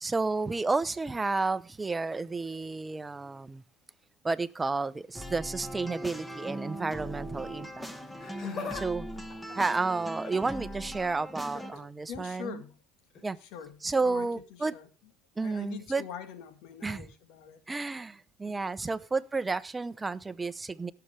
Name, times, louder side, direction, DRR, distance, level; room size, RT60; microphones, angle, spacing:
voice 1, 0.0-3.6 4.2-7.9 8.8-9.1 9.5-12.6 13.2-13.4 13.8-14.7 15.4-16.1 16.8-17.1 17.7-20.9, right 3 dB, 20° right, 0.8 m, -31 dB
sound 1, 5.1-11.7, equal, 10° left, 1.7 m, -40 dB
Laughter, 8.0-8.9 9.2-10.5 11.4-11.8 13.1-13.3 14.2-14.3, left 4 dB, 45° left, 3.8 m, -41 dB
voice 2, 8.4-8.8 12.1-12.8 13.5-14.3 14.6-14.9 15.4-17.6 18.4-18.5, left 8 dB, 75° left, 1.9 m, -43 dB
17.5 x 6.9 x 3.4 m
supercardioid pair, 80°, 0 cm